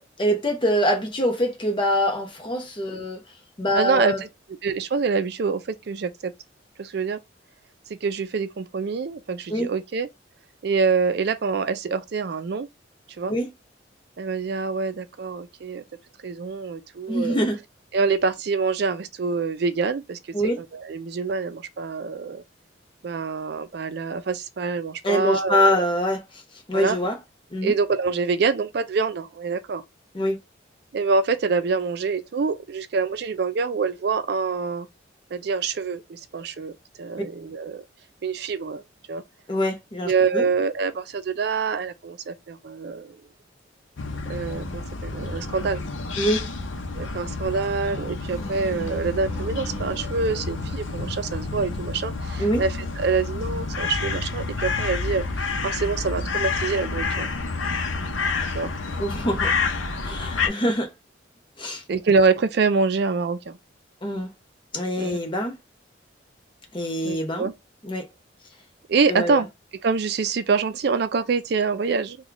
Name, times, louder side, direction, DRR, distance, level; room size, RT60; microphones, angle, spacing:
voice 1, 0.0-3.2 3.6-4.2 9.5-9.7 13.3-13.5 17.1-17.6 20.3-20.6 25.0-26.2 26.7-27.2 27.5-27.7 30.1-30.4 39.5-40.5 46.2-46.4 52.4-52.6 59.0-59.6 60.0-60.9 61.6-61.8 64.0-64.3 64.7-65.6 66.7-67.5 67.8-68.1 69.1-69.4, equal, 25° left, 0.8 m, -24 dB
voice 2, 3.7-4.3 4.6-6.3 6.8-7.2 8.0-10.1 10.6-12.7 13.2-13.3 14.2-15.8 16.2-17.4 17.9-20.2 20.6-22.4 23.0-25.8 26.7-27.0 27.6-29.8 30.9-34.9 35.3-36.7 37.0-37.8 38.2-39.2 40.0-43.2 44.3-45.8 46.9-55.2 55.6-57.3 58.5-58.7 61.9-63.6 65.0-65.2 67.0-67.5 68.9-69.5 69.8-72.2, right 4 dB, 55° right, 0.4 m, -25 dB
sound 1, 44.0-60.5, left 4 dB, 85° left, 0.7 m, -29 dB
sound 2, 48.3-52.9 56.2-56.7, right 2 dB, 15° right, 1.0 m, -43 dB
3.0 x 2.3 x 3.8 m
head